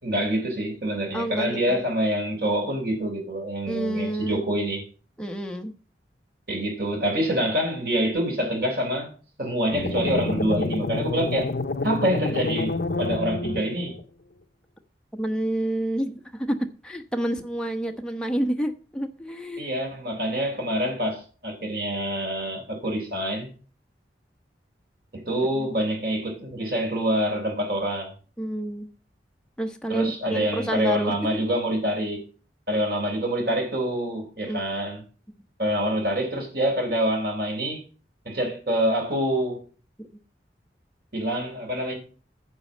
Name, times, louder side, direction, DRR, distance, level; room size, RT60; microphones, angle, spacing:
voice 1, 0.0-4.8 6.5-9.1 9.4-11.5 11.8-13.9 19.6-23.5 25.1-28.1 29.9-32.2 32.7-35.0 35.6-37.8 38.3-39.6 41.1-42.0, equal, 55° right, 4.1 m, -26 dB
voice 2, 1.1-1.8 3.7-4.4 5.2-5.7 15.1-16.6 16.8-19.7 25.6-25.7 28.4-28.9 29.6-31.4 34.5-34.6 40.0-40.1, right 1 dB, 5° left, 1.0 m, -29 dB
sound 1, 9.7-14.0, left 3 dB, 60° left, 0.7 m, -28 dB
9.7 x 6.2 x 7.3 m
head